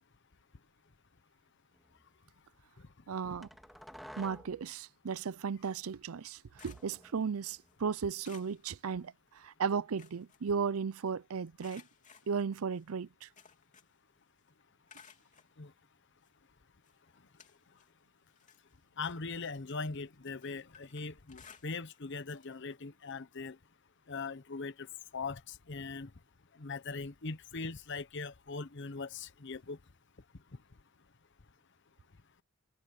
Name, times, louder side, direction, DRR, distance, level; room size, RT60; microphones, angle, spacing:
sound 1, 1.8-2.1 3.4-4.7 6.6-7.8, equal, ahead, 2.3 m, -52 dB
voice 1, 3.1-3.5 4.2-11.8 12.3-13.3, right 6 dB, 90° right, 0.5 m, -35 dB
sound 2, 6.2-7.8 8.2-9.5 9.8-11.1 11.6-14.1 14.4-15.5 16.2-16.3 16.8-18.0 18.3-22.1 22.4-22.6 22.9-23.0 24.3-24.4, left 6 dB, 35° left, 3.4 m, -60 dB
voice 2, 19.0-23.6 24.1-26.1 26.5-29.8 30.5-30.6, left 4 dB, 55° left, 1.0 m, -41 dB
head